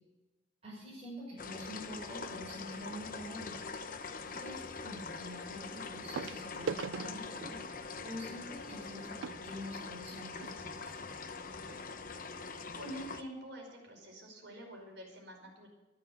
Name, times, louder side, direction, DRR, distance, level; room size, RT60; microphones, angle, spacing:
voice 1, 0.6-3.5 4.2-7.6 8.0-11.2, equal, 35° right, -8 dB, 6.9 m, -46 dB
sound 1, 1.4-13.2, left 4 dB, 45° left, 0.9 m, -43 dB
sound 2, 2.6-2.9 4.5-4.6 6.1-10.6 11.3-11.4 11.6-11.8 12.3-12.4, right 5 dB, 85° right, 0.4 m, -43 dB
voice 2, 12.7-15.7, equal, 70° right, 0 dB, 5.1 m, -47 dB
13.5 x 11.5 x 7.1 m, 1.1 s
head